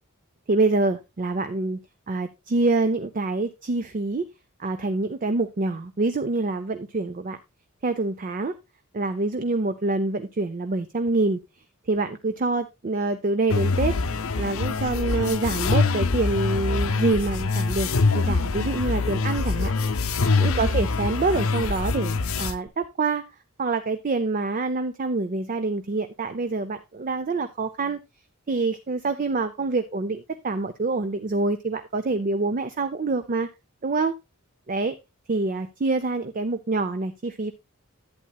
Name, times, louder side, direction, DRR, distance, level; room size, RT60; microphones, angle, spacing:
voice 1, 0.5-1.8 2.1-4.3 4.6-7.4 7.8-8.5 8.9-11.4 11.9-13.9 14.4-19.7 20.4-23.2 23.6-28.0 28.5-33.5 33.8-34.1 34.7-35.0 35.3-37.5, right 3 dB, 35° right, 10 dB, 0.5 m, -26 dB
sound 1, 13.5-22.5, left 3 dB, 65° left, 0.6 m, -24 dB
11.5 x 8.5 x 2.3 m, 0.23 s
head